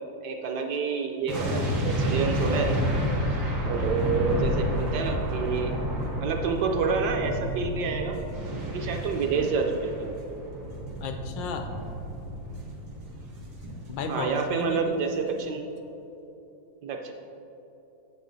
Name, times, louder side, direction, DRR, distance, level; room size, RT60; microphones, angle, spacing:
voice 1, 0.0-2.7 3.6-5.7 6.2-8.2 8.7-10.1 14.1-15.6 16.8-17.1, right 5 dB, 70° right, 3 dB, 1.1 m, -28 dB
sound 1, 1.3-14.4 14.7-14.9, equal, 85° right, 2.1 m, -30 dB
voice 2, 11.0-11.7 13.6-15.0, left 4 dB, 80° left, 6 dB, 1.3 m, -34 dB
7.4 x 7.3 x 3.9 m, 3.0 s
omnidirectional pair, 2.1 m